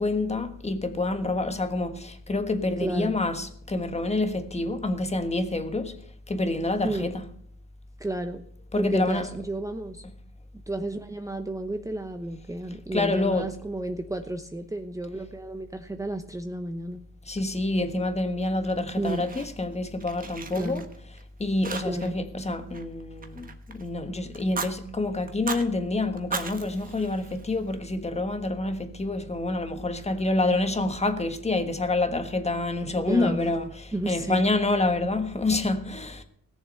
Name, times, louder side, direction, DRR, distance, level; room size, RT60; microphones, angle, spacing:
voice 1, 0.0-6.0 6.3-7.2 8.7-9.3 12.9-13.5 17.3-36.2, left 2 dB, 20° left, 1.4 m, -27 dB
voice 2, 2.8-3.2 6.8-7.1 8.0-8.4 8.7-10.0 10.7-17.0 18.9-19.3 20.6-20.8 21.8-22.1 32.9-33.4 33.9-34.4, right 1 dB, 10° right, 0.9 m, -32 dB
Fire, 18.6-19.7 20.0-21.2 21.6-22.2 22.5-23.9 24.3-24.7 25.3-25.7 26.2-27.7, right 4 dB, 30° right, 1.4 m, -37 dB
17.0 x 7.1 x 6.7 m
cardioid pair, 90°, 30 cm